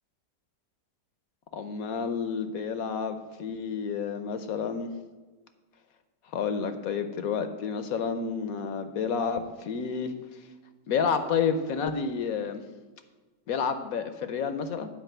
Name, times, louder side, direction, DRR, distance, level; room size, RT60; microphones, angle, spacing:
voice 1, 1.5-4.9 6.3-10.1 10.9-12.6 13.5-14.9, left 6 dB, 65° left, 10 dB, 1.0 m, -30 dB
9.1 x 5.0 x 7.8 m, 1.3 s
omnidirectional pair, 1.9 m